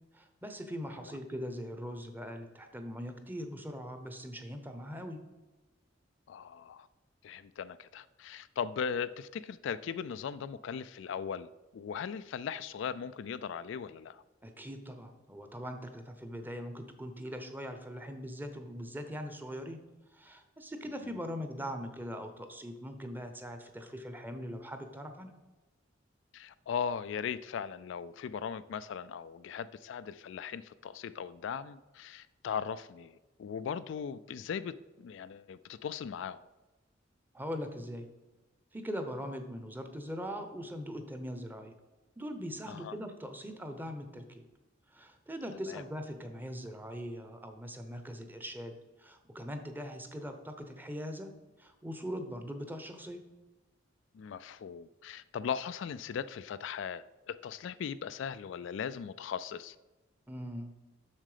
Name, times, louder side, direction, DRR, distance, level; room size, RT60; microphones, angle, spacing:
voice 1, 0.1-5.2 14.4-19.8 20.1-25.3 37.3-38.1 38.7-41.7 42.2-44.4 44.9-51.3 51.6-53.2 60.3-60.7, equal, 10° right, 0.8 m, -41 dB
voice 2, 6.3-6.9 7.2-14.2 26.3-36.5 42.7-43.0 45.7-45.8 54.1-59.8, left 7 dB, 65° left, 0.3 m, -38 dB
7.4 x 6.5 x 5.0 m
head